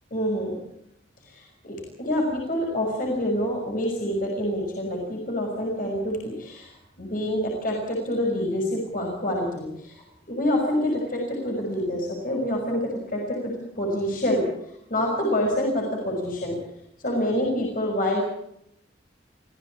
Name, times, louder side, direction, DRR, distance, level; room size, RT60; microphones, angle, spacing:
voice 1, 0.1-0.6 1.2-16.6 17.0-18.2, left 1 dB, 45° left, 0 dB, 6.0 m, -27 dB
26.0 x 16.0 x 8.6 m, 0.78 s
head